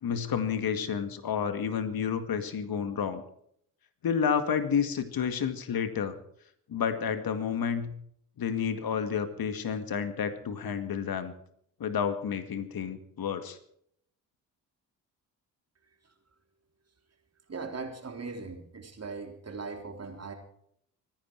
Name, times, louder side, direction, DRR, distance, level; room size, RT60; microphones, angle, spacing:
voice 1, 0.0-3.2 4.0-6.2 6.7-7.9 8.4-11.3 11.8-13.6, left 7 dB, 55° left, 10 dB, 2.1 m, -30 dB
voice 2, 17.5-20.3, right 4 dB, 35° right, 4 dB, 3.7 m, -39 dB
25.0 x 10.5 x 4.7 m, 0.67 s
hypercardioid pair, 55°, 44 cm